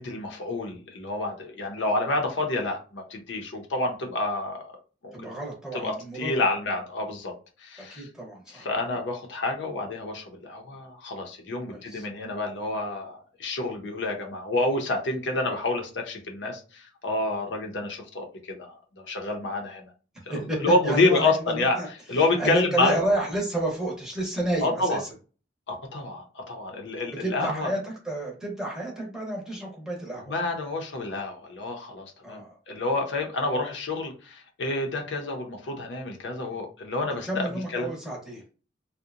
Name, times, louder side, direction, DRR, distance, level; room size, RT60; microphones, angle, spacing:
voice 1, 0.0-4.8 5.0-5.3 5.7-7.3 7.6-8.1 8.5-18.8 19.1-19.9 20.4-23.0 24.6-25.0 25.7-27.7 30.3-37.9, left 2 dB, 75° left, 2 dB, 0.6 m, -28 dB
voice 2, 5.1-6.4 7.9-8.7 11.7-12.1 20.3-21.9 22.4-25.1 27.2-30.3 32.2-32.6 37.2-38.4, right 1 dB, 5° right, -2 dB, 0.7 m, -30 dB
2.7 x 2.1 x 2.4 m, 0.36 s
head